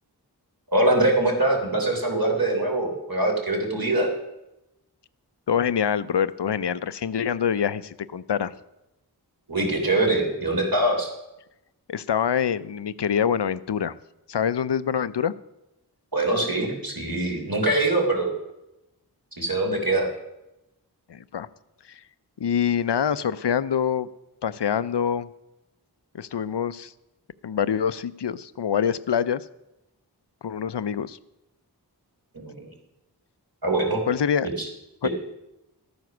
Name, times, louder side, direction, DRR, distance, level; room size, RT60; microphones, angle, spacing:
voice 1, 0.7-4.1 9.5-11.1 16.1-18.3 19.4-20.1 32.3-32.7 33.6-34.0 34.6-34.7 35.0-35.1, right 2 dB, 60° right, 0 dB, 3.3 m, -23 dB
voice 2, 5.5-8.5 11.9-14.0 14.3-15.3 21.1-21.5 21.9-22.0 22.4-24.1 24.4-25.3 26.1-26.9 27.4-29.5 30.4-31.2 34.1-34.5 35.0-35.1, left 8 dB, 90° left, 16 dB, 0.5 m, -25 dB
13.0 x 9.4 x 6.0 m, 0.92 s
wide cardioid pair, 40°, 40 cm